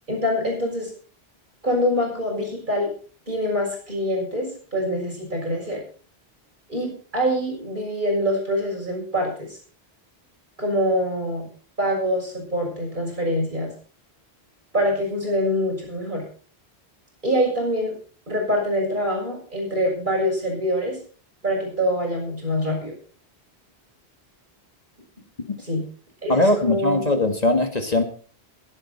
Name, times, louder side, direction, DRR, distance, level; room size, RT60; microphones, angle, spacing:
voice 1, 0.1-0.9 1.6-2.9 3.3-5.8 6.7-9.6 10.6-11.5 11.8-13.7 14.7-16.2 17.2-18.0 18.3-21.0 21.4-22.9 25.6-25.8 26.2-27.0, equal, 45° right, 0 dB, 6.8 m, -25 dB
voice 2, 26.3-28.0, left 2 dB, 40° left, 6 dB, 1.7 m, -20 dB
22.0 x 8.9 x 4.3 m, 0.42 s
omnidirectional pair, 1.1 m